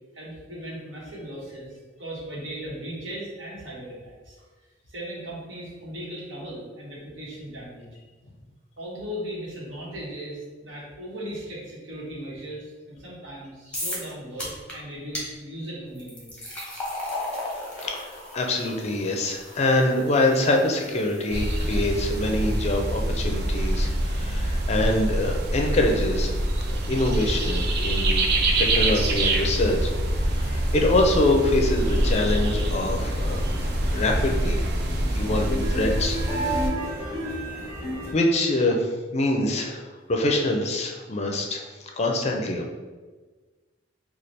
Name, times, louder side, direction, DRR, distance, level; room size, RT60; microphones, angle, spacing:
voice 1, 0.1-4.5 4.9-7.9 8.8-16.5, right 1 dB, 90° right, -5 dB, 1.2 m, -37 dB
sound 1, 13.7-14.1 14.4-14.7 15.1-15.3 16.0-23.1, left 1 dB, 5° left, 0.8 m, -36 dB
voice 2, 17.8-26.4 26.7-28.3 28.6-29.9 30.4-33.4 33.9-34.6 35.1-36.2 38.1-41.6 42.0-42.7, left 1 dB, 35° left, 2 dB, 0.4 m, -25 dB
sound 2, 21.3-36.7, right 1 dB, 55° right, 0.4 m, -25 dB
sound 3, 30.3-38.1, equal, 15° right, 1.3 m, -33 dB
3.2 x 2.3 x 4.1 m, 1.3 s
head